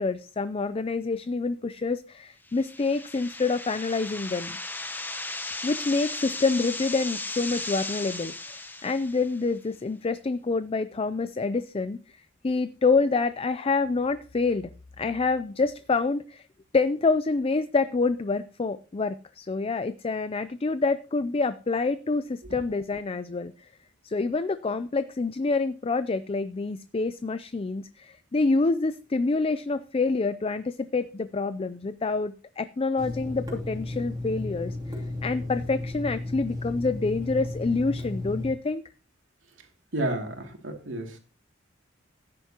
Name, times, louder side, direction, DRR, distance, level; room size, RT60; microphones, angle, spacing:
voice 1, 0.0-4.6 5.6-12.0 12.4-14.7 15.0-16.4 16.7-23.5 24.0-34.8 35.2-38.8, left 3 dB, 30° left, 13 dB, 0.4 m, -27 dB
sound 1, 2.5-9.5, left 2 dB, 10° left, 0.8 m, -36 dB
Water tap faucet / Sink (filling or washing), 33.0-38.5, left 2 dB, 20° right, 2.8 m, -34 dB
voice 2, 39.9-41.2, right 1 dB, 75° right, 3 dB, 2.6 m, -31 dB
15.0 x 10.0 x 2.9 m, 0.36 s
head